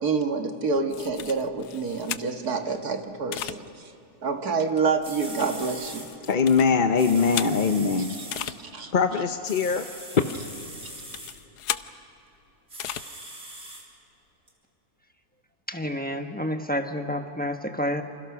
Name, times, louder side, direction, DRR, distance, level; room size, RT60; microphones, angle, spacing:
voice 1, 0.0-3.9 4.2-6.1 8.1-8.9, right 4 dB, 70° right, 5 dB, 2.1 m, -28 dB
sound 1, 0.9-2.6 3.3-3.6 4.8-7.8 8.3-8.6 9.6-11.9 12.8-13.0, left 11 dB, 80° left, 1.3 m, -36 dB
sound 2, 4.7-4.8 5.0-6.1 7.0-8.5 9.4-11.3 12.7-13.8 14.5-14.6, right 2 dB, 40° right, 4.0 m, -41 dB
voice 2, 6.3-8.2 8.9-9.8, left 5 dB, 40° left, 6 dB, 0.8 m, -22 dB
voice 3, 15.7-18.0, equal, 5° left, 5 dB, 1.1 m, -29 dB
28.5 x 26.5 x 6.1 m, 3.0 s
omnidirectional pair, 1.7 m